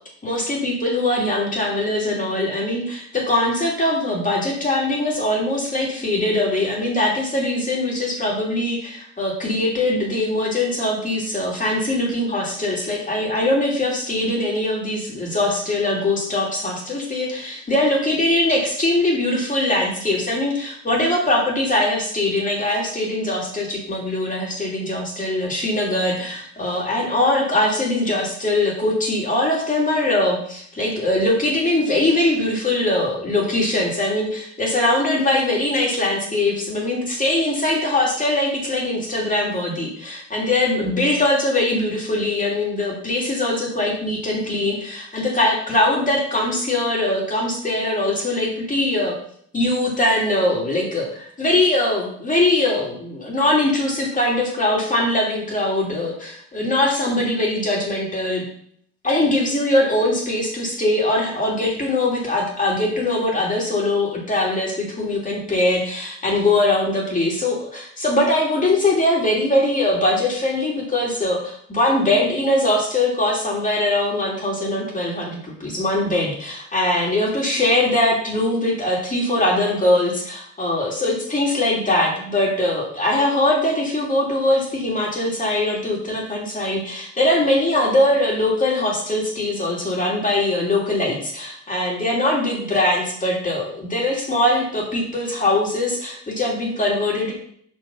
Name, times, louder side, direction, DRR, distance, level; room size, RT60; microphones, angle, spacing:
voice 1, 0.2-49.2 49.5-58.4 59.0-97.3, left 1 dB, 25° left, -3 dB, 2.7 m, -21 dB
5.5 x 4.7 x 5.4 m, 0.63 s
cardioid pair, 90°, 30 cm